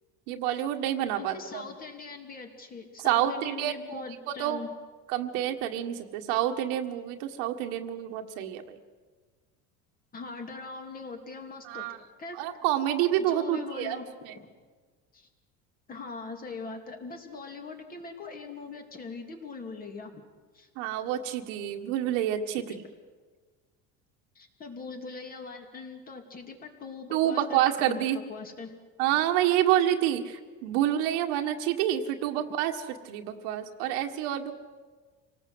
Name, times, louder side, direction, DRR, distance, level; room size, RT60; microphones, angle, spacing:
voice 1, 0.3-1.6 3.0-4.0 4.4-4.6 5.1-8.8 11.6-12.0 12.3-14.0 14.2-14.3 20.8-22.8 27.1-28.2 29.0-34.5, right 11 dB, 80° right, 4 dB, 1.8 m, -28 dB
voice 2, 1.2-4.7 10.1-11.8 12.2-12.4 13.3-14.0 14.3-14.5 15.1-15.3 15.9-20.2 20.5-20.7 24.3-28.7, left 4 dB, 25° left, 4 dB, 2.8 m, -41 dB
27.0 x 18.5 x 8.0 m, 1.4 s
cardioid pair, 150°, 33 cm